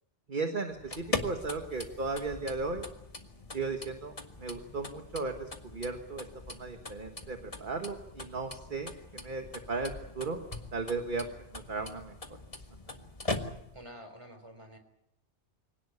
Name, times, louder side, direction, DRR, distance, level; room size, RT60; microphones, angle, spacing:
voice 1, 0.3-2.8 3.5-4.1 4.4-10.4 10.7-11.3 11.5-12.1, right 3 dB, 45° right, 5 dB, 1.7 m, -36 dB
sound 1, 0.7-13.9, left 2 dB, 30° left, 1.7 m, -41 dB
voice 2, 13.7-14.8, equal, 25° right, 8 dB, 3.7 m, -48 dB
25.0 x 18.0 x 8.4 m, 0.79 s
omnidirectional pair, 1.2 m